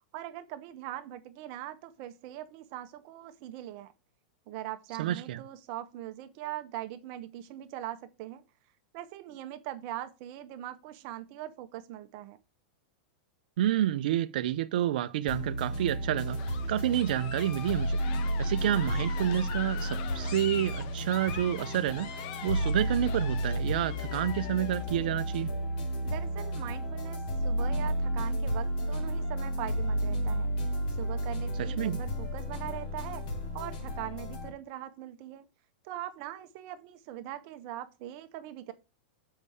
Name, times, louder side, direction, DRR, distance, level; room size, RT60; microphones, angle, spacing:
voice 1, 0.1-3.9 4.5-8.4 8.9-12.4 26.0-30.5 30.9-35.5 35.8-38.7, right 13 dB, 50° right, 0.9 m, -41 dB
voice 2, 5.0-5.4 13.6-18.0 18.4-22.1 22.4-25.5 31.6-32.0, right 12 dB, 70° right, 0.5 m, -29 dB
sound 1, 15.3-34.5, equal, 65° left, 3.8 m, -32 dB
sound 2, 16.3-24.8, left 9 dB, 50° left, 1.3 m, -43 dB
7.3 x 5.5 x 4.8 m
supercardioid pair, 140°, 5 cm